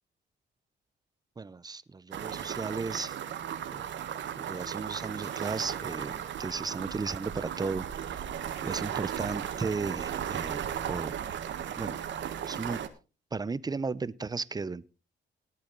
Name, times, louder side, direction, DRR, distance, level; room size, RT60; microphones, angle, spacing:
voice 1, 1.4-3.2 3.7-3.9 4.4-7.9 8.6-11.2 11.8-12.0 12.5-12.8 13.3-14.9, right 4 dB, 20° right, 0.7 m, -35 dB
sound 1, 2.1-12.9, right 9 dB, 70° right, 1.5 m, -36 dB
18.5 x 8.6 x 3.9 m
cardioid pair, 90°, 20 cm